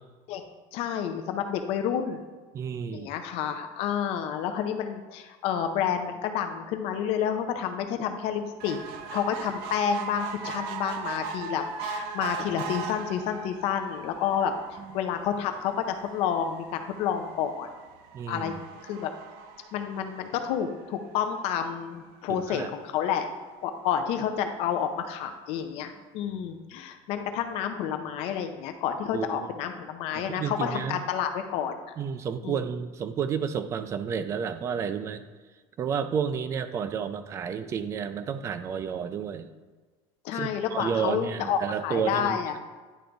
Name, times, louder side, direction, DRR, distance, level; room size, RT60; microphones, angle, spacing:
voice 1, 0.7-2.2 2.9-8.8 9.1-17.7 18.3-18.5 18.8-19.1 19.7-23.3 23.6-31.7 32.4-32.6 40.2-42.6, left 8 dB, 55° left, 6 dB, 0.5 m, -29 dB
voice 2, 2.5-3.1 14.8-15.0 18.1-18.6 22.3-22.7 29.1-29.5 30.1-31.0 32.0-35.3 35.8-39.5 40.3-42.6, right 7 dB, 25° right, 10 dB, 0.3 m, -31 dB
sound 1, 8.6-21.2 21.8-21.9 22.2-22.3 22.5-22.6, right 5 dB, 75° right, 0.6 m, -39 dB
10.0 x 3.4 x 3.9 m, 1.3 s
cardioid pair, 170°, 12 cm